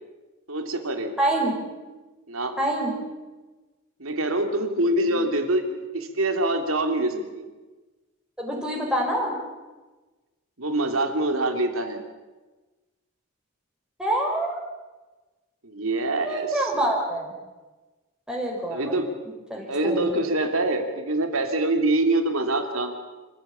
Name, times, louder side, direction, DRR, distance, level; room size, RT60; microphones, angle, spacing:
voice 1, 0.5-1.2 2.3-2.6 4.0-7.5 10.6-12.0 15.6-16.5 18.7-19.1 19.7-22.9, right 2 dB, 70° right, 5 dB, 3.0 m, -25 dB
voice 2, 1.2-1.5 2.6-2.9 8.4-9.3 14.0-14.6 16.2-17.3 18.3-18.9 19.5-20.0, right 1 dB, 5° right, -2 dB, 4.9 m, -26 dB
26.5 x 15.0 x 8.6 m, 1.2 s
head